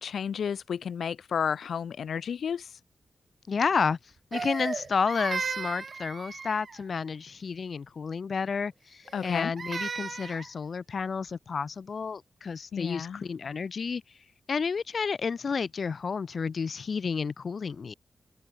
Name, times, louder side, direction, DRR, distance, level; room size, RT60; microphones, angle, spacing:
voice 1, 0.0-2.7 9.1-9.5 12.7-13.2, left 7 dB, 85° left, 4.5 m, -32 dB
voice 2, 3.5-4.0 4.3-14.0 14.5-17.9, left 5 dB, 50° left, 5.2 m, -31 dB
Crying sobbing, 4.3-6.8 9.1-10.5, right 5 dB, 45° right, 1.7 m, -35 dB
wide cardioid pair, 160°, 0 cm